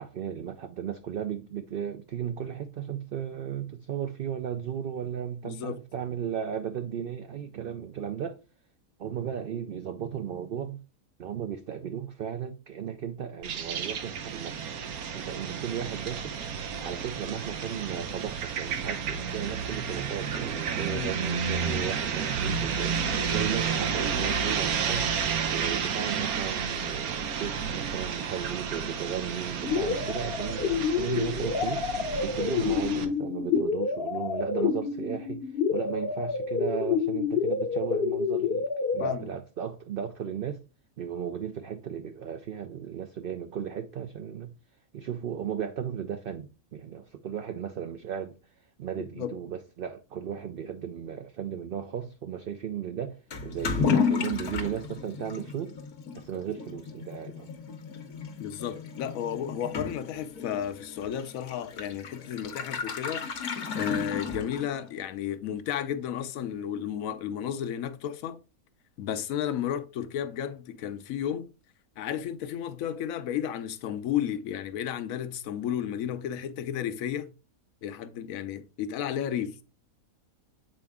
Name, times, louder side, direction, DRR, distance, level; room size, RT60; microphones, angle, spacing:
voice 1, 0.0-8.4 9.0-10.8 11.2-14.7 15.1-16.4 16.7-25.1 25.4-31.9 32.2-38.7 38.9-40.6 41.0-44.5 44.9-48.4 48.8-55.7 56.1-57.5, right 8 dB, 60° right, 0.6 m, -35 dB
voice 2, 5.4-5.8 20.9-21.1 39.0-39.3 49.0-49.4 58.4-63.3 63.7-68.4 69.0-71.5 72.0-77.3 77.8-79.6, left 9 dB, 75° left, 1.1 m, -33 dB
sound 1, 13.4-33.1, right 6 dB, 85° right, 1.4 m, -31 dB
sound 2, 29.6-39.2, left 6 dB, 50° left, 0.9 m, -28 dB
Toilet flush / Liquid, 53.3-64.9, left 5 dB, 90° left, 1.5 m, -33 dB
7.6 x 4.4 x 3.5 m
omnidirectional pair, 1.5 m